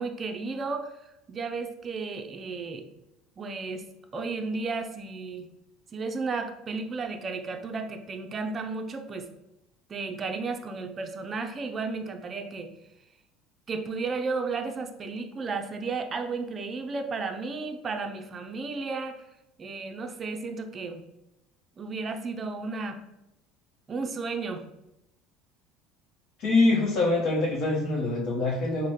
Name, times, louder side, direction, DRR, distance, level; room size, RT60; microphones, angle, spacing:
voice 1, 0.0-2.9 3.4-3.9 4.1-5.5 5.9-9.3 9.9-12.7 13.7-19.2 19.6-21.0 21.8-23.0 23.9-24.6, right 4 dB, 35° right, 5 dB, 0.4 m, -33 dB
voice 2, 26.4-28.9, left 2 dB, 60° left, -3 dB, 0.8 m, -24 dB
4.0 x 2.1 x 3.2 m, 0.90 s
supercardioid pair, 100°, 0 cm